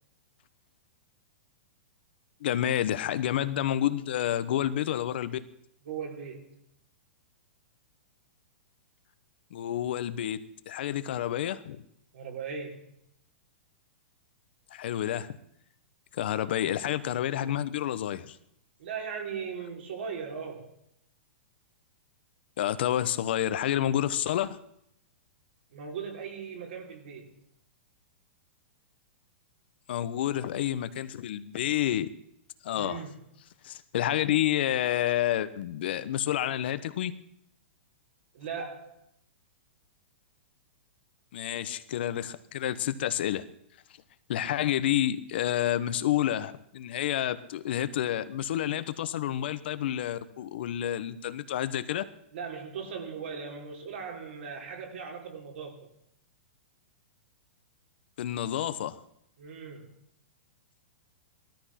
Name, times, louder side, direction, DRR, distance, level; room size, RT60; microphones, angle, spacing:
voice 1, 2.4-5.4 9.5-10.4 10.7-11.8 14.7-15.3 16.1-18.4 22.6-24.6 29.9-32.1 32.6-33.0 33.6-37.1 41.3-43.5 44.3-52.0 58.2-59.0, left 11 dB, 55° left, 13 dB, 1.0 m, -29 dB
voice 2, 5.8-6.6 12.1-12.9 18.8-20.8 25.7-27.4 32.7-33.1 38.3-39.0 52.3-55.9 59.4-60.0, right 6 dB, 65° right, 2 dB, 4.0 m, -38 dB
17.0 x 13.0 x 5.9 m, 0.73 s
hypercardioid pair, 165°, 7 cm